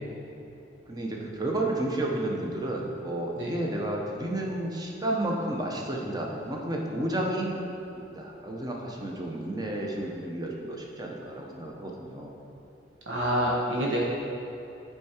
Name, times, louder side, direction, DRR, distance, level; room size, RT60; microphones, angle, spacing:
voice 1, 0.9-7.6 8.1-12.3, right 1 dB, 20° right, -1 dB, 0.8 m, -31 dB
voice 2, 13.1-14.0, equal, 85° right, -5 dB, 1.3 m, -27 dB
8.2 x 4.7 x 4.4 m, 2.9 s
head